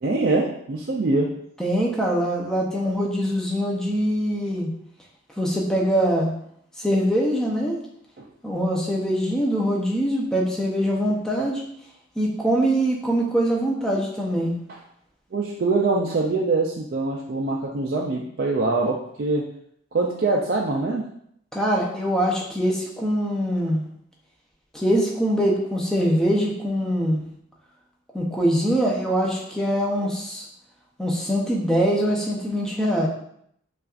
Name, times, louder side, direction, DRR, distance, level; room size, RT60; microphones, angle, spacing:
voice 1, 0.0-1.3 8.2-8.3 14.7-14.8 15.3-19.5 19.9-21.1, right 3 dB, 50° right, -2 dB, 0.4 m, -24 dB
voice 2, 1.6-4.7 5.4-6.3 6.8-7.8 8.4-11.6 12.2-14.5 21.5-23.8 24.7-27.2 28.1-30.4 31.0-33.1, equal, 5° left, -3 dB, 0.6 m, -23 dB
5.5 x 2.4 x 2.4 m, 0.70 s
head